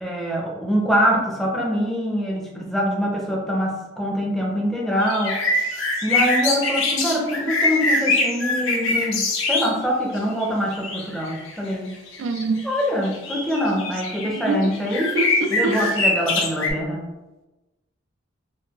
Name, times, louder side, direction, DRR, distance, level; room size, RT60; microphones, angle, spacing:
voice 1, 0.0-5.4 6.0-12.0 12.6-15.2 15.5-17.1, equal, ahead, -2 dB, 0.6 m, -24 dB
sound 1, 5.0-9.7 10.1-16.7, left 2 dB, 85° left, 0.7 m, -23 dB
voice 2, 12.2-12.7 14.5-14.7 15.1-15.9, right 3 dB, 85° right, 6 dB, 0.4 m, -25 dB
4.2 x 2.2 x 2.3 m, 1.1 s
head